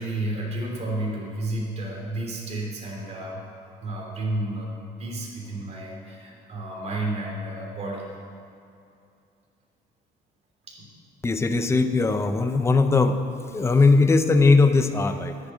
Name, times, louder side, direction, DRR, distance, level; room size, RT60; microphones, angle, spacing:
voice 1, 0.0-4.7 5.0-8.1 10.7-10.9, right 1 dB, 40° right, -2 dB, 3.2 m, -31 dB
voice 2, 11.2-13.2 13.5-15.4, left 3 dB, 15° left, 8 dB, 0.7 m, -19 dB
10.0 x 7.9 x 9.2 m, 2.6 s
cardioid pair, 110°, 17 cm